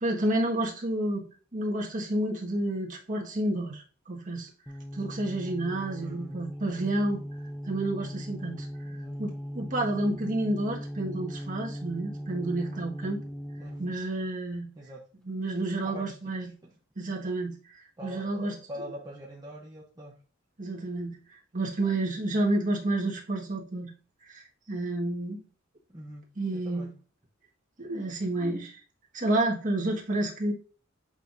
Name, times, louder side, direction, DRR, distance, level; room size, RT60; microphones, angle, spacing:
voice 1, 0.0-1.2 1.5-4.5 4.9-7.2 7.6-13.2 13.8-14.7 15.2-16.5 16.9-17.5 18.0-18.5 20.6-21.2 21.5-23.9 24.3-25.4 26.4-26.9 27.8-28.8 29.1-30.5, right 1 dB, 40° right, -1 dB, 1.6 m, -30 dB
sound 1, 4.7-14.0, equal, 5° left, 0.6 m, -39 dB
voice 2, 6.0-6.4 8.9-9.2 13.6-13.8 14.8-15.0 15.8-16.2 16.6-16.7 18.0-20.1 25.9-26.2 26.5-26.9, equal, 20° right, -2 dB, 0.9 m, -43 dB
8.1 x 5.6 x 2.6 m, 0.38 s
head